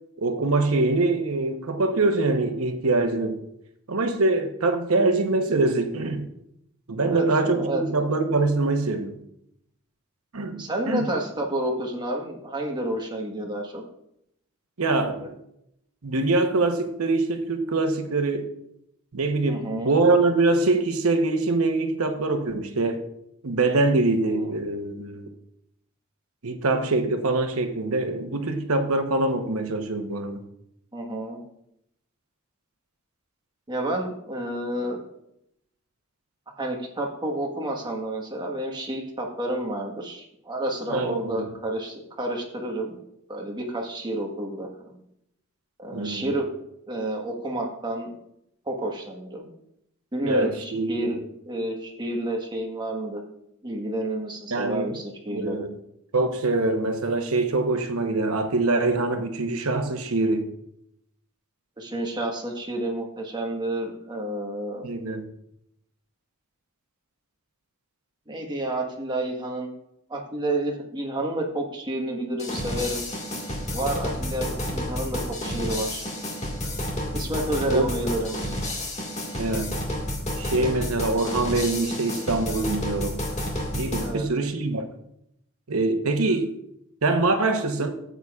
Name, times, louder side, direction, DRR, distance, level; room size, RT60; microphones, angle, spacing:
voice 1, 0.2-3.4 3.9-6.3 6.9-9.1 10.3-11.1 14.8-15.3 16.0-18.5 19.1-23.0 23.4-25.3 26.4-30.4 40.9-41.4 45.9-46.3 50.2-51.1 54.5-55.0 55.3-55.8 56.1-60.5 64.8-65.2 77.7-77.9 79.4-79.7 80.4-83.2 83.7-84.9 85.7-86.5 87.0-87.9, right 2 dB, 80° right, 1.0 m, -24 dB
voice 2, 7.0-7.8 10.6-13.8 15.2-15.3 19.5-19.9 24.3-24.5 30.9-31.4 33.7-35.0 36.6-43.0 43.3-45.0 45.8-46.5 46.9-48.1 48.7-49.5 50.1-53.2 53.6-55.6 61.8-64.9 68.3-69.7 70.1-73.0 73.7-76.0 77.1-78.3 84.0-84.2, right 1 dB, 20° right, 1.4 m, -30 dB
sound 1, 72.4-84.1, left 1 dB, 30° left, 1.8 m, -30 dB
13.5 x 8.2 x 2.4 m
head